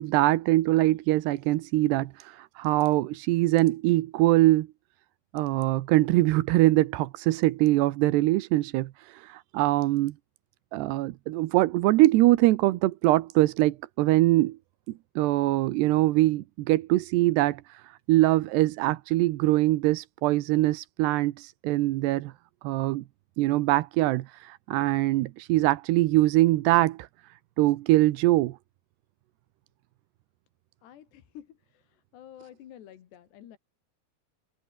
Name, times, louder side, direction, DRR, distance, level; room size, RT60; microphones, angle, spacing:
voice 1, 0.0-4.7 5.3-10.1 10.7-14.6 15.2-22.3 22.6-23.0 23.4-27.1 27.6-28.6, right 17 dB, 85° right, 3.0 m, -23 dB
voice 2, 30.8-33.6, left 10 dB, 85° left, 4.3 m, -50 dB
omnidirectional pair, 4.8 m